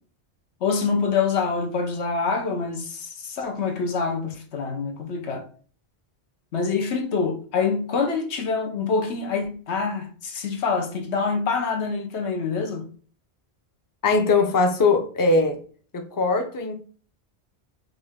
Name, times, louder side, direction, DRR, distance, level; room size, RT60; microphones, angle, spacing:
voice 1, 0.6-5.5 6.5-12.9, left 5 dB, 90° left, 1.2 m, -26 dB
voice 2, 14.0-15.6 15.9-16.7, left 3 dB, 25° left, 0.5 m, -21 dB
5.2 x 2.7 x 3.5 m
omnidirectional pair, 1.1 m